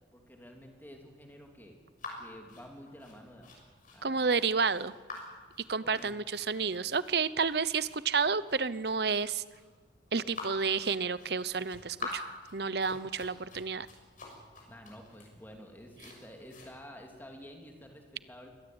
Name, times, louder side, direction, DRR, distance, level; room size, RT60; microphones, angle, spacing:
voice 1, 0.1-1.8 2.2-3.6 3.9-4.4 5.8-6.1 14.7-18.5, equal, 10° left, 2 dB, 3.2 m, -50 dB
sound 1, 2.0-16.7, left 2 dB, 45° left, 6.3 m, -47 dB
voice 2, 4.0-4.9 5.7-9.4 10.1-12.2 12.5-13.9, right 5 dB, 60° right, 17 dB, 0.8 m, -30 dB
23.5 x 18.0 x 8.9 m, 1.4 s
head